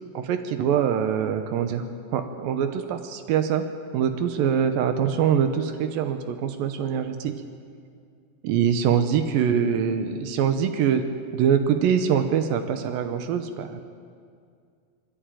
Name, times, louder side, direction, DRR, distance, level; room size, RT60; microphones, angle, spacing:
voice 1, 0.1-1.8 2.1-3.6 3.9-7.4 8.4-13.8, right 8 dB, 85° right, 8 dB, 2.7 m, -24 dB
21.0 x 15.5 x 9.1 m, 2.2 s
omnidirectional pair, 3.9 m